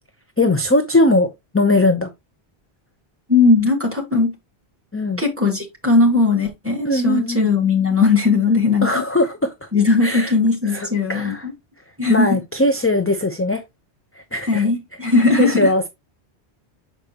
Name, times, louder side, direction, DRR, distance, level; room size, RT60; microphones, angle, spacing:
voice 1, 0.4-2.1 4.9-5.2 6.8-7.5 8.8-9.7 10.0-10.3 10.6-11.5 12.1-13.6 14.2-14.7 15.4-15.9, left 2 dB, 15° left, 0.5 m, -20 dB
voice 2, 3.3-4.3 5.2-8.9 9.7-11.3 12.0-12.4 14.5-15.7, left 4 dB, 10° right, 1.9 m, -18 dB
6.6 x 5.1 x 2.9 m
omnidirectional pair, 1.1 m